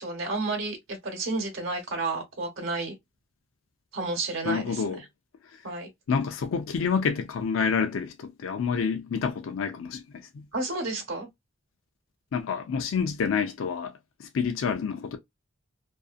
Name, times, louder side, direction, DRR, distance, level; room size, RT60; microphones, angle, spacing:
voice 1, 0.0-2.9 3.9-5.0 5.6-5.9 10.5-11.3, right 3 dB, 80° right, 1.0 m, -31 dB
voice 2, 4.4-5.0 6.1-10.4 12.3-13.9 14.2-15.2, left 6 dB, 85° left, 0.4 m, -28 dB
2.5 x 2.4 x 2.4 m
head